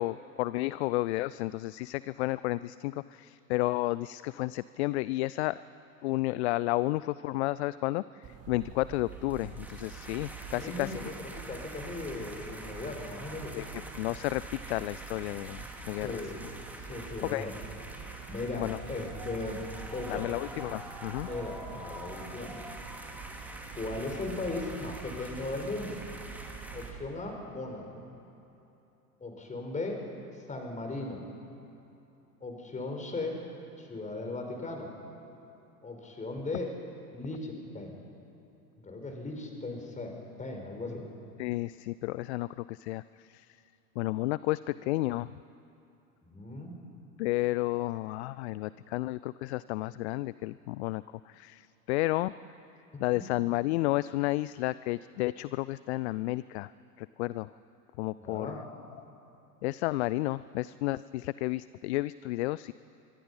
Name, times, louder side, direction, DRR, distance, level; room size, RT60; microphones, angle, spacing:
voice 1, 0.0-5.6 6.0-11.0 13.6-13.7 14.0-16.2 17.2-17.4 18.5-18.8 20.1-21.3 41.4-43.0 43.3-43.5 44.0-45.3 47.2-52.3 53.0-56.7 57.0-57.5 58.0-58.6 59.6-62.7, left 18 dB, 45° left, 18 dB, 0.5 m, -32 dB
sound 1, 8.2-27.1, right 6 dB, 30° right, 2.2 m, -46 dB
sound 2, 9.0-26.9, right 1 dB, 5° right, 2.5 m, -46 dB
voice 2, 10.5-13.6 15.9-16.4 16.9-17.5 18.3-19.6 19.9-20.3 21.2-22.6 23.8-26.0 26.7-27.9 29.2-30.0 30.5-31.2 32.4-33.4 33.8-34.9 35.8-36.7 37.1-38.0 38.8-41.0 46.2-46.7 58.2-58.6, left 2 dB, 15° left, 2 dB, 4.6 m, -37 dB
25.0 x 24.0 x 5.6 m, 3.0 s
figure-of-eight pair, 90°, 47 cm